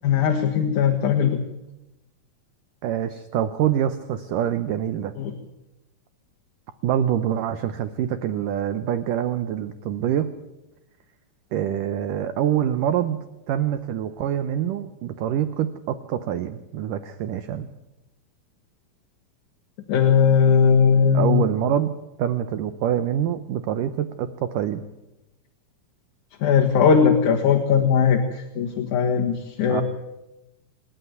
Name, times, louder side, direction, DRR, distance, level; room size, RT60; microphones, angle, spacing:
voice 1, 0.0-1.4 5.2-5.3 19.9-21.4 26.4-29.8, left 7 dB, 55° left, 2 dB, 2.5 m, -19 dB
voice 2, 2.8-5.1 6.8-10.3 11.5-13.2 13.5-17.7 21.1-21.9 22.2-24.8 29.7-29.8, right 10 dB, 75° right, 11 dB, 2.0 m, -25 dB
27.5 x 12.0 x 9.4 m, 0.94 s
omnidirectional pair, 4.8 m